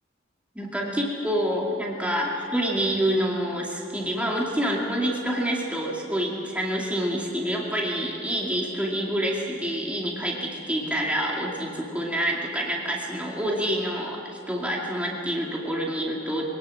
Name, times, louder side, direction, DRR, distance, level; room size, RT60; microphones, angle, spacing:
voice 1, 0.6-16.5, equal, 5° right, -2 dB, 2.3 m, -27 dB
24.0 x 18.0 x 7.6 m, 2.6 s
head